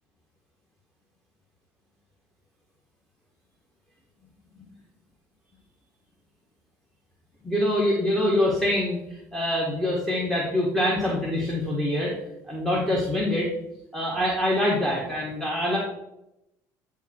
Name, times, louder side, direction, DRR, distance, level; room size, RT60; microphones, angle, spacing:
voice 1, 7.4-12.1 12.5-13.5 13.9-15.8, left 1 dB, 5° left, -4 dB, 1.9 m, -25 dB
10.0 x 3.7 x 4.6 m, 0.84 s
supercardioid pair, 90°, 8 cm